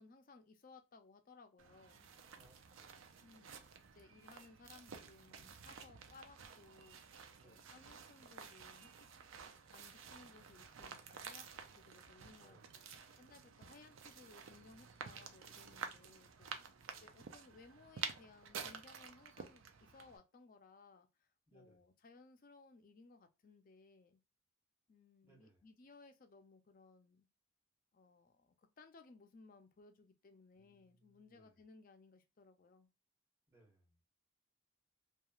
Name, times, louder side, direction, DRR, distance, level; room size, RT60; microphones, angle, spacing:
voice 1, 0.0-2.1 3.2-3.6 3.9-7.0 7.4-8.9 9.7-11.5 11.8-12.8 13.2-24.2 24.9-27.3 27.9-32.9, left 3 dB, 40° left, 0.4 m, -62 dB
sound 1, 1.6-20.2, right 6 dB, 65° right, 0.4 m, -51 dB
voice 2, 2.4-3.2 7.3-7.7 12.4-12.7 16.5-17.2 21.5-21.9 25.2-25.6 30.5-31.6 33.5-34.0, right 2 dB, 10° right, 1.1 m, -70 dB
3.0 x 2.3 x 2.3 m
head